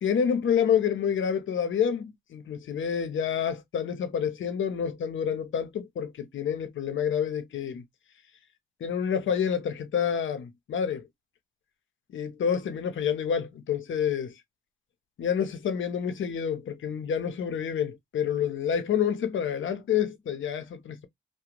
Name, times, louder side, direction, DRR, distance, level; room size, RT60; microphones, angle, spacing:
voice 1, 0.0-7.8 8.8-11.0 12.1-14.3 15.2-21.1, left 8 dB, 70° left, 0.6 m, -28 dB
2.4 x 2.1 x 2.8 m
supercardioid pair, 50°, 21 cm